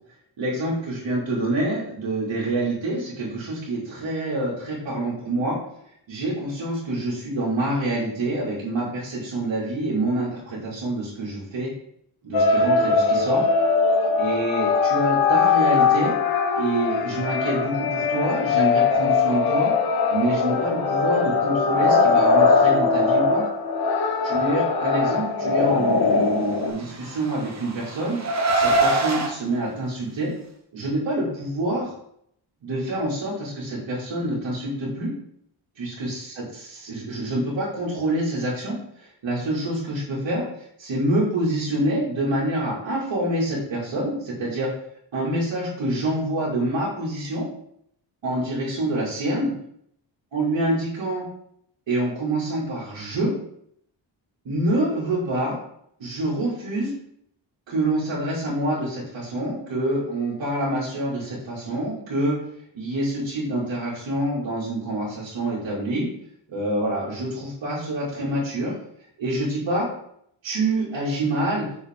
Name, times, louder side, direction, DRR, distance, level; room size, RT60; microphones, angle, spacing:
voice 1, 0.4-5.6 6.1-11.7 12.2-13.5 14.2-16.1 16.5-19.7 20.1-23.4 24.2-28.2 28.5-30.3 30.7-31.9 32.6-35.1 35.8-44.7 45.1-47.5 48.2-49.5 50.3-51.2 51.9-53.3 54.4-55.6 56.0-56.9 57.7-62.4 62.7-66.1 66.5-68.7 69.2-69.9 70.4-71.7, right 1 dB, 75° right, -8 dB, 2.3 m, -26 dB
sound 1, 12.3-26.7, left 4 dB, 55° left, 0.9 m, -21 dB
Car, 26.8-29.3, right 2 dB, 35° right, 0.9 m, -23 dB
6.3 x 5.0 x 3.6 m, 0.70 s
wide cardioid pair, 150°, 45 cm